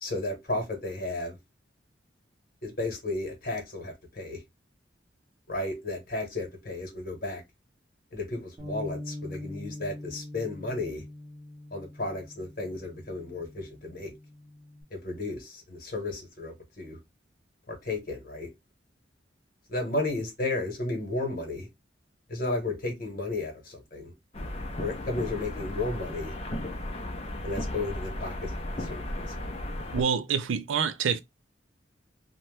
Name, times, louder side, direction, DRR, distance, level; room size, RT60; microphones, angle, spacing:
voice 1, 0.0-1.4 2.6-4.4 5.5-7.4 8.1-11.0 11.7-14.1 14.9-17.0 17.7-18.5 19.7-21.7 22.3-24.1 24.8-26.3 27.4-29.4, left 2 dB, 50° left, 1.1 m, -33 dB
Bass guitar, 8.6-14.8, left 1 dB, 20° right, 0.9 m, -43 dB
sound 1, 24.3-30.0, left 1 dB, 35° left, 0.5 m, -35 dB
voice 2, 29.9-31.2, right 6 dB, 85° right, 0.4 m, -27 dB
2.7 x 2.1 x 3.2 m
head